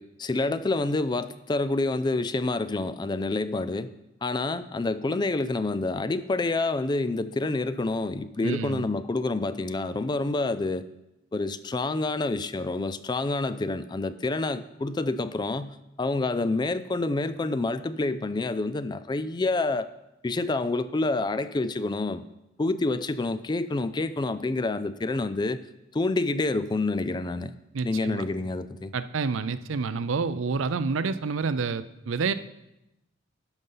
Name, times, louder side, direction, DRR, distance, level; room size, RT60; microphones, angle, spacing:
voice 1, 0.0-3.9 4.2-10.9 11.3-19.9 20.2-22.2 22.6-25.6 25.9-27.6 27.8-28.9, left 2 dB, 20° left, 13 dB, 0.3 m, -28 dB
voice 2, 8.4-8.9 27.7-28.2 28.9-32.3, right 4 dB, 80° right, 14 dB, 0.5 m, -28 dB
12.0 x 5.4 x 5.5 m, 0.90 s
head